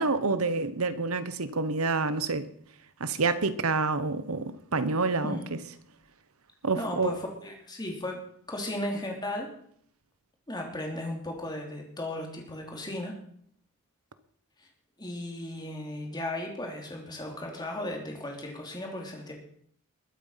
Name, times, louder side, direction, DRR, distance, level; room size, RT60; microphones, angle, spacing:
voice 1, 0.0-2.5 3.0-5.6 6.6-7.1, right 3 dB, 80° right, 1.1 m, -28 dB
voice 2, 6.7-8.2 8.5-9.5 10.5-13.2 14.6-14.7 15.0-19.3, left 1 dB, 20° left, 3.2 m, -35 dB
21.0 x 8.9 x 5.8 m
head